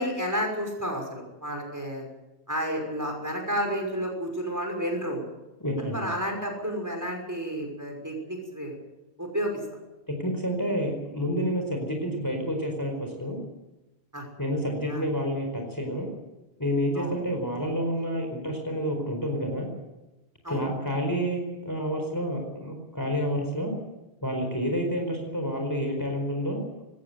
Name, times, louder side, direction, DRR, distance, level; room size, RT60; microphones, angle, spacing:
voice 1, 0.0-2.0 2.5-5.2 5.8-8.8 9.2-9.6 14.1-14.2 14.9-15.0 17.0-17.1 20.4-20.7, equal, 15° right, 2 dB, 6.0 m, -31 dB
voice 2, 5.6-6.1 10.1-13.4 14.4-16.1 16.6-19.7 20.5-23.7 24.2-26.6, equal, 20° left, 2 dB, 4.5 m, -29 dB
20.0 x 17.5 x 9.2 m, 1.0 s
omnidirectional pair, 1.1 m